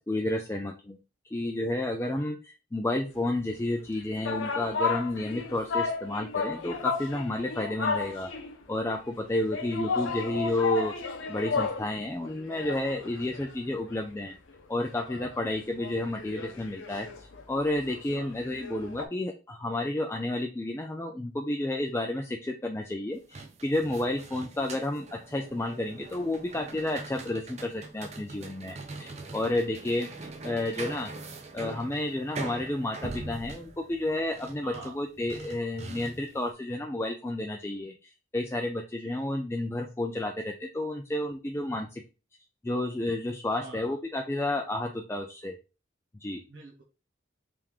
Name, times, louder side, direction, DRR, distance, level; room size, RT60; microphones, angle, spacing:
voice 1, 0.1-1.0 1.3-8.3 8.7-10.9 11.3-14.3 14.7-30.1 30.4-31.1 31.5-42.0 42.6-45.6 46.2-46.4, left 1 dB, 15° left, 2 dB, 0.3 m, -31 dB
sound 1, 3.8-8.6 9.5-11.9 12.2-14.1 14.5-14.6 14.9-19.1, left 4 dB, 85° left, 0.6 m, -33 dB
sound 2, 23.1-36.4, right 3 dB, 35° right, 0.6 m, -42 dB
voice 2, 34.6-35.0 39.0-39.1 43.6-44.0 46.5-46.8, right 3 dB, 75° right, -1 dB, 0.9 m, -46 dB
3.7 x 3.4 x 3.0 m, 0.32 s
head